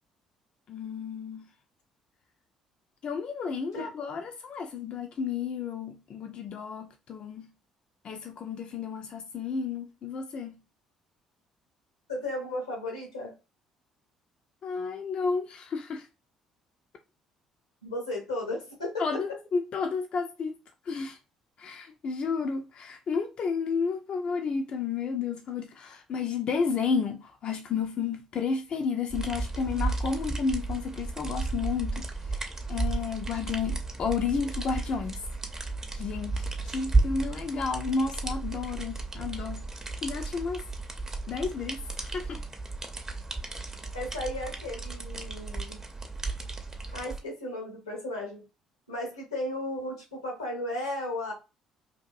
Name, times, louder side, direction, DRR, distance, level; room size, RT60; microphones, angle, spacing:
voice 1, 0.7-1.4 3.0-7.5 8.0-10.6 14.6-16.1 19.0-20.6 20.9-21.2 21.6-32.1 32.3-35.2 35.9-39.6 40.0-40.6 41.3-42.4, left 5 dB, 45° left, 0.4 m, -32 dB
voice 2, 3.7-4.1 12.1-13.3 17.8-19.2 43.9-45.8 46.9-48.4 48.9-51.3, left 1 dB, 85° left, 0.9 m, -35 dB
sound 1, 29.1-47.2, right 3 dB, 20° right, 0.6 m, -33 dB
2.7 x 2.5 x 2.4 m
figure-of-eight pair, 50°, 2 cm